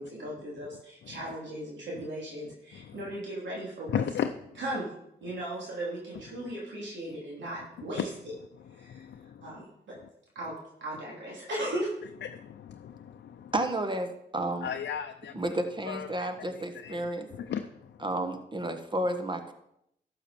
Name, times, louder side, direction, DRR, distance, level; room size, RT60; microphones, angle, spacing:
voice 1, 0.0-4.0 4.6-4.9 5.2-8.0 8.7-9.0 9.4-9.9 10.3-10.5 10.8-11.9, right 1 dB, 90° right, -4 dB, 3.1 m, -37 dB
voice 2, 1.0-1.4 1.9-2.1 2.7-3.2 3.9-4.6 5.3-5.4 6.3-6.5 7.5-9.6 9.9-10.1 12.2-13.5 14.4-15.6 15.8-18.1 18.6-18.7, left 8 dB, 80° left, 6 dB, 0.6 m, -38 dB
voice 3, 13.5-14.7 15.3-17.3 18.0-19.5, right 1 dB, 25° right, 7 dB, 1.4 m, -31 dB
12.0 x 7.1 x 4.4 m, 0.78 s
cardioid pair, 60°, 18 cm